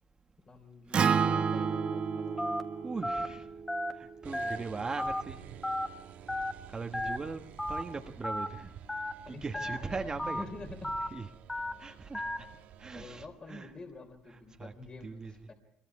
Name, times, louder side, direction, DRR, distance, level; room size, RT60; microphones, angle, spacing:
voice 1, 0.5-2.6 7.0-7.3 9.3-10.9 12.9-15.5, left 3 dB, 30° left, 5 dB, 3.5 m, -47 dB
Acoustic guitar, 0.9-5.2, right 6 dB, 40° right, 1.1 m, -32 dB
Telephone, 2.4-2.6 3.0-3.3 3.7-3.9 4.3-4.6 5.0-5.2 5.6-5.9 6.3-6.5 6.9-7.2 7.6-7.8 8.2-8.5 8.9-9.1 9.5-9.8 10.2-10.4 10.8-11.1 11.5-11.7 12.1-12.4, left 1 dB, 10° left, 1.5 m, -33 dB
voice 2, 2.8-3.5 3.9-5.4 5.7-5.9 6.7-8.7 9.3-10.4 11.1-11.3 11.8-12.5 12.8-13.7 14.3-14.7 15.0-15.3, right 4 dB, 25° right, 5 dB, 1.3 m, -40 dB
sound 1, 4.2-13.3, right 9 dB, 70° right, 1.6 m, -50 dB
25.5 x 22.0 x 4.8 m, 0.70 s
cardioid pair, 100°, 3 cm